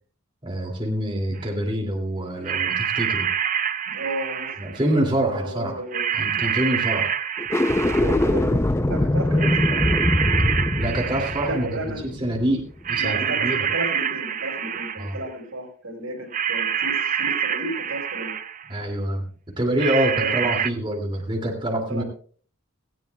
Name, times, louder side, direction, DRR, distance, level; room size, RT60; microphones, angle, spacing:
voice 1, 0.4-3.3 4.6-5.8 6.1-7.1 10.5-13.7 15.0-15.1 18.7-19.3 19.6-22.0, right 1 dB, 25° right, 0 dB, 2.6 m, -26 dB
sound 1, 1.4-1.5 2.4-4.9 5.9-8.4 9.4-11.8 12.8-15.3 16.3-18.7 19.8-20.7, right 8 dB, 40° right, 0.5 m, -26 dB
voice 2, 3.9-5.0 5.3-6.0 7.8-9.8 11.4-12.2 12.9-18.3 20.2-20.6 21.9-22.0, right 1 dB, 80° right, 2 dB, 4.9 m, -33 dB
sound 2, 7.4-12.7, left 1 dB, 15° left, 0.5 m, -22 dB
18.5 x 16.0 x 2.3 m, 0.44 s
head